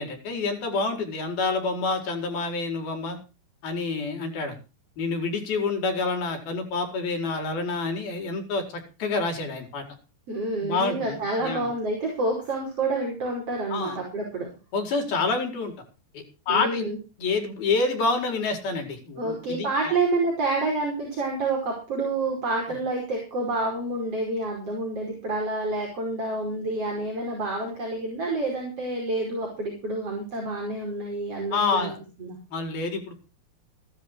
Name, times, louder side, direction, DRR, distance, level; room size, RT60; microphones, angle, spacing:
voice 1, 0.0-3.2 3.6-4.6 5.0-9.8 10.6-11.7 13.7-14.0 14.7-15.7 16.1-16.9 17.2-19.9 31.5-32.0 32.5-33.2, left 3 dB, 75° left, 4 dB, 6.4 m, -28 dB
voice 2, 10.3-14.5 16.5-17.0 19.2-31.9 32.2-32.4, right 2 dB, 40° right, 0 dB, 6.2 m, -28 dB
16.5 x 12.5 x 4.6 m, 0.33 s
omnidirectional pair, 4.3 m